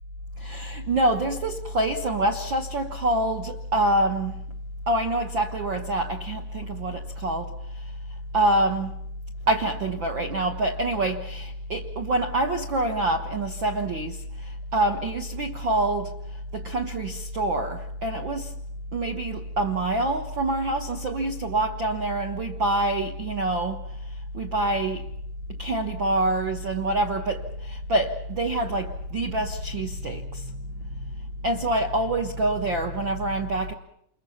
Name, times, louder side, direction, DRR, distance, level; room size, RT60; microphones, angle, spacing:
voice 1, 0.4-4.4 4.9-7.9 8.3-8.9 9.5-16.1 16.5-18.5 18.9-23.8 24.1-25.1 25.6-30.6 30.9-31.1 31.4-33.7, right 1 dB, 70° right, 1.1 m, -26 dB
28.5 x 22.5 x 5.8 m
omnidirectional pair, 4.3 m